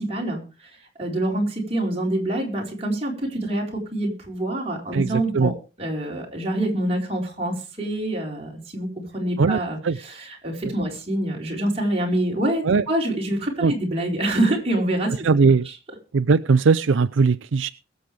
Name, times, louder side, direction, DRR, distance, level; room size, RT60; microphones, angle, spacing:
voice 1, 0.0-5.5 5.8-15.3 15.6-15.7, right 1 dB, 35° right, -2 dB, 4.5 m, -26 dB
voice 2, 4.9-5.5 9.4-10.0 12.6-12.8 13.6-13.7 15.2-15.7 16.1-17.7, right 4 dB, 85° right, 12 dB, 0.5 m, -19 dB
22.0 x 7.8 x 3.4 m, 0.33 s
head